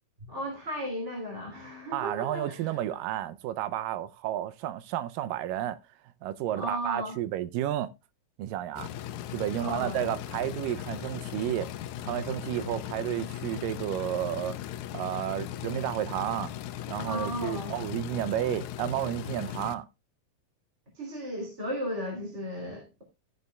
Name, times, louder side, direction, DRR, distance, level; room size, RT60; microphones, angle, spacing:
voice 1, 0.3-2.7 6.5-7.2 9.6-10.1 17.0-17.7 20.9-23.0, equal, 20° right, 2.8 m, -35 dB
voice 2, 1.9-5.8 6.2-7.9 8.4-8.9 9.3-11.7 12.0-14.6 14.9-16.5 16.9-19.9, right 12 dB, 80° right, 2.1 m, -31 dB
sound 1, 8.8-19.8, left 11 dB, 80° left, 1.7 m, -38 dB
13.5 x 9.9 x 2.3 m
omnidirectional pair, 4.2 m